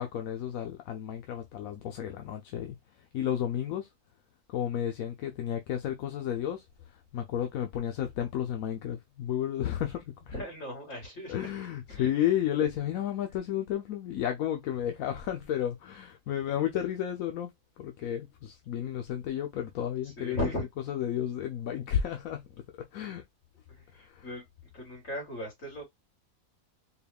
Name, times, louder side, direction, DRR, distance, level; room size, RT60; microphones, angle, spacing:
voice 1, 0.0-2.8 3.1-3.9 4.5-6.6 7.1-10.3 11.3-17.5 17.8-20.4 20.9-22.5 22.9-23.2 23.9-24.2, left 10 dB, 80° left, 1.0 m, -32 dB
voice 2, 10.3-11.5 11.9-12.1 20.0-20.7 23.7-24.4 24.7-25.8, left 1 dB, 65° left, 2.7 m, -37 dB
4.6 x 2.2 x 3.4 m
omnidirectional pair, 1.5 m